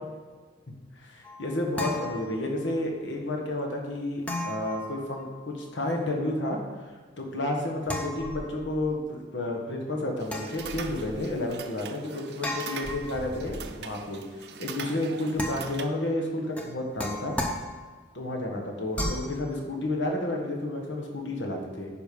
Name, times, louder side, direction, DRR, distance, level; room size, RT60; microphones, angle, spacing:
voice 1, 1.0-6.6 7.2-17.4 18.1-21.9, left 1 dB, 85° left, 1 dB, 1.5 m, -31 dB
sound 1, 1.2-2.8 4.2-5.6 7.9-8.9 10.2-11.3 12.4-13.8 15.4-16.0 16.6-18.1 18.9-19.4, left 1 dB, 10° left, 0.8 m, -36 dB
sound 2, 10.2-15.9, right 6 dB, 60° right, 0.6 m, -42 dB
10.0 x 5.1 x 5.3 m, 1.4 s
head